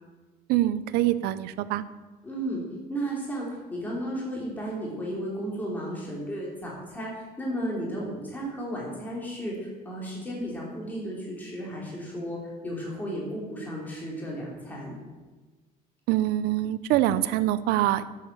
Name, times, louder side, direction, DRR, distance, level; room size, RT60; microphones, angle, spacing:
voice 1, 0.5-1.8 16.1-18.1, right 13 dB, 80° right, 15 dB, 0.7 m, -24 dB
voice 2, 2.2-2.6 2.9-15.0, right 1 dB, 10° left, -4 dB, 2.9 m, -34 dB
11.0 x 7.5 x 7.3 m, 1.3 s
cardioid pair, 165°, 16 cm